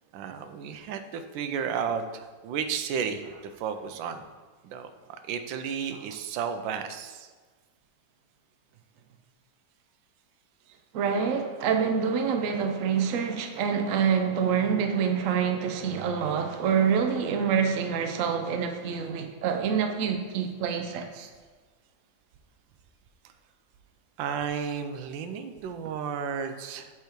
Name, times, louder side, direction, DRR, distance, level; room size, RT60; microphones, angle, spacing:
voice 1, 0.1-3.2 3.6-4.2 4.6-4.9 5.3-7.3 24.2-26.9, right 7 dB, 85° right, 8 dB, 1.3 m, -33 dB
voice 2, 10.9-21.3, right 7 dB, 70° right, 6 dB, 0.8 m, -26 dB
7.6 x 3.5 x 4.5 m, 1.4 s
omnidirectional pair, 2.0 m